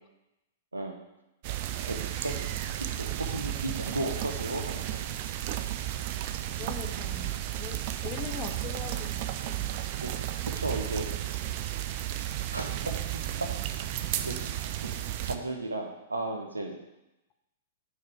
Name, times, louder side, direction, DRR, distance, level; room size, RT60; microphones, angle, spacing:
sound 1, 1.4-15.4, right 13 dB, 50° right, 0.5 m, -33 dB
voice 1, 1.9-2.5 2.8-5.1 5.6-5.7 10.0-10.1 10.5-11.1 12.5-12.7 14.2-14.4 14.8-14.9 15.2-16.7, right 2 dB, 90° right, 3 dB, 1.3 m, -34 dB
voice 2, 6.5-9.7, left 9 dB, 30° left, 7 dB, 0.9 m, -42 dB
8.8 x 4.8 x 5.0 m, 0.93 s
hypercardioid pair, 110°, 0 cm